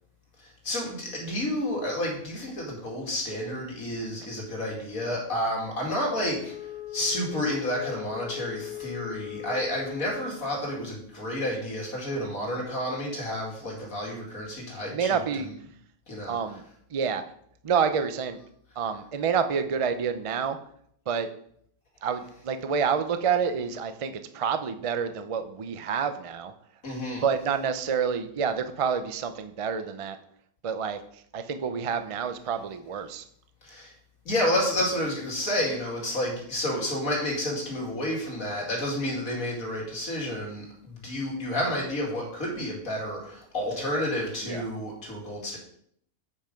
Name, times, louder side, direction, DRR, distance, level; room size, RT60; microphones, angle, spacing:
voice 1, 0.4-6.5 6.9-15.2 16.1-16.4 26.8-27.2 33.6-33.9 34.2-45.6, left 1 dB, 75° left, -2 dB, 2.9 m, -30 dB
Wind instrument woodwind instrument, 6.2-10.4, left 13 dB, 40° left, 0.6 m, -39 dB
voice 2, 14.7-15.5 16.3-16.6 16.9-17.2 17.6-18.4 18.8-20.6 21.1-21.3 22.0-26.5 27.2-30.2 30.6-33.3 36.6-36.8 41.7-41.8 44.4-44.6, right 6 dB, 45° right, 10 dB, 0.4 m, -28 dB
8.6 x 5.5 x 5.2 m, 0.66 s
omnidirectional pair, 1.5 m